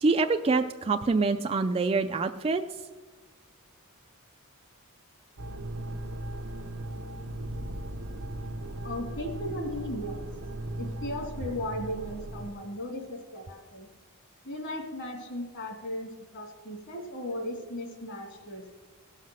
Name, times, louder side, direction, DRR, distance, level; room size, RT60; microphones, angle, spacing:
voice 1, 0.0-2.6, right 3 dB, 25° right, 6 dB, 0.4 m, -25 dB
sound 1, 5.4-12.5, right 1 dB, 85° right, 0.9 m, -37 dB
voice 2, 8.8-10.3 10.8-13.9 14.4-18.7, left 1 dB, 55° left, 2 dB, 2.5 m, -36 dB
17.0 x 5.7 x 6.2 m, 1.3 s
head